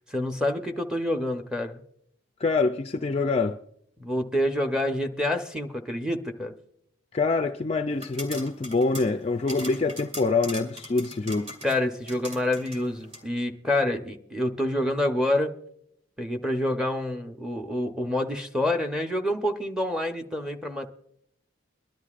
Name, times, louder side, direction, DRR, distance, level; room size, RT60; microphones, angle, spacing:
voice 1, 0.1-1.8 4.0-6.5 11.6-15.5 16.2-20.9, left 1 dB, 5° right, 0.7 m, -27 dB
voice 2, 2.4-3.6 7.1-11.5, left 3 dB, 30° left, 0.3 m, -25 dB
sound 1, 7.9-13.2, equal, 30° right, 2.1 m, -41 dB
23.0 x 11.5 x 2.4 m
head